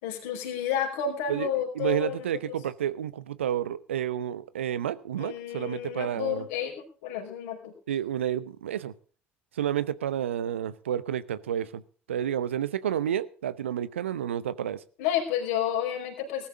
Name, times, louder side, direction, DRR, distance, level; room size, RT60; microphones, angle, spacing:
voice 1, 0.0-2.3 5.2-7.7 15.0-16.5, left 9 dB, 70° left, 2 dB, 4.9 m, -31 dB
voice 2, 1.7-6.5 7.9-8.9 9.6-11.8 12.1-14.8, right 10 dB, 80° right, 16 dB, 0.8 m, -30 dB
19.0 x 13.0 x 3.7 m, 0.39 s
figure-of-eight pair, 55°, 6 cm